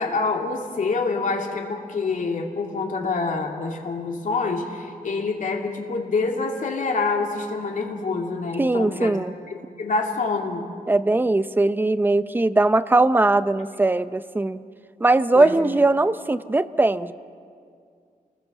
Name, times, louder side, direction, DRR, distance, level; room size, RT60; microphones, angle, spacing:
voice 1, 0.0-9.2 9.5-10.7 15.3-15.5, left 4 dB, 60° left, 2 dB, 2.9 m, -26 dB
voice 2, 8.6-9.3 10.9-14.6 15.0-17.1, right 2 dB, 15° right, 12 dB, 0.7 m, -20 dB
29.5 x 20.5 x 7.1 m, 2.3 s
wide cardioid pair, 135°, 15 cm